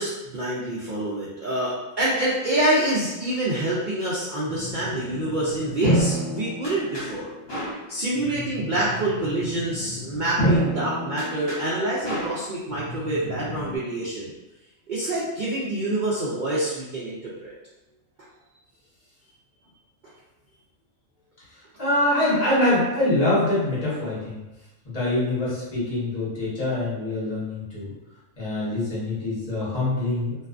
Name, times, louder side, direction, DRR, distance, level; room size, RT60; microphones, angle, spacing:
voice 1, 0.0-7.3 7.9-14.3 14.9-17.5, right 1 dB, 75° right, -7 dB, 0.4 m, -26 dB
sound 1, 4.4-13.8, equal, 50° left, 1.1 m, -29 dB
voice 2, 21.8-24.4 24.8-27.9 28.4-30.4, left 1 dB, 30° left, -9 dB, 1.0 m, -24 dB
2.5 x 2.3 x 2.4 m, 1.0 s
omnidirectional pair, 1.4 m